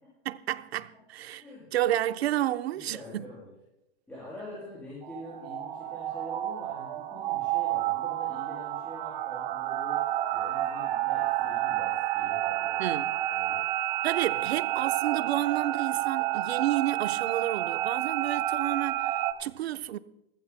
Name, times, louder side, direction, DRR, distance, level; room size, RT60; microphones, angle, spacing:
voice 1, 0.2-1.4 1.7-3.3 12.8-13.1 14.0-20.0, right 13 dB, 80° right, 0.9 m, -30 dB
voice 2, 2.7-3.5 4.1-10.1 10.3-12.8 13.3-13.9 14.3-14.5, left 1 dB, 5° left, 7.0 m, -45 dB
sound 1, 5.0-19.3, right 14 dB, 55° right, 1.4 m, -30 dB
28.5 x 15.0 x 2.2 m
supercardioid pair, 150°, 31 cm